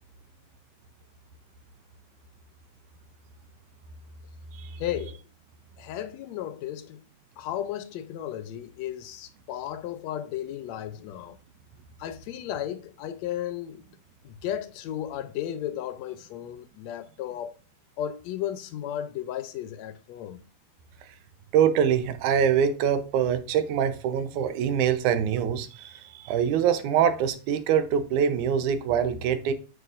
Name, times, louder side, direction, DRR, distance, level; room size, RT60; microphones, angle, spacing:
voice 1, 4.8-5.2 5.8-7.0 7.4-11.4 12.0-13.8 14.2-17.5 18.0-20.4, left 11 dB, 75° left, 1.8 m, -34 dB
voice 2, 21.5-29.5, right 8 dB, 85° right, 2.3 m, -24 dB
8.1 x 7.6 x 2.5 m
omnidirectional pair, 3.4 m